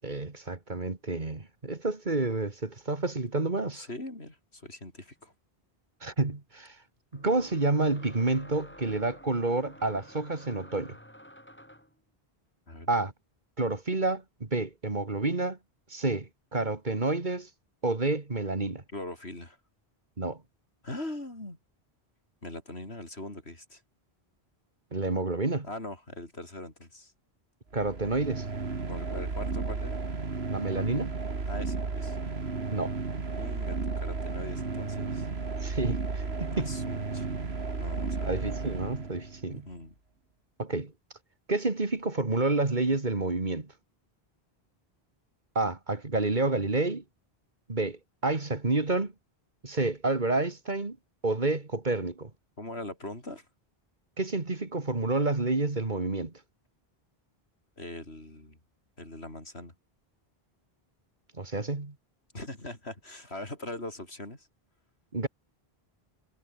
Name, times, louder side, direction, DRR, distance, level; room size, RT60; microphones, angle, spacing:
voice 1, 0.0-3.9 6.0-6.8 7.1-11.0 12.9-13.1 13.6-15.6 15.9-17.5 17.8-18.8 20.2-20.4 24.9-25.7 27.7-28.5 30.5-31.2 32.7-32.9 35.6-36.7 38.2-39.6 40.6-40.9 41.5-43.7 45.6-47.0 47.7-49.1 49.6-51.0 51.2-52.3 54.2-56.3 61.4-61.9 65.1-65.3, right 2 dB, 45° right, 2.4 m, -29 dB
voice 2, 3.7-5.3 12.7-12.9 18.9-19.6 20.8-21.6 22.4-23.8 25.6-27.1 28.9-30.0 31.5-32.2 33.3-35.3 36.5-37.3 37.8-38.4 39.5-39.9 52.6-53.5 57.8-58.6 59.0-59.7 62.3-64.5, left 1 dB, 90° left, 6.3 m, -41 dB
sound 1, 5.2-5.3 7.1-12.0, equal, 10° left, 6.9 m, -51 dB
sound 2, 27.7-39.5, right 4 dB, 80° right, 2.5 m, -33 dB
omnidirectional pair, 1.1 m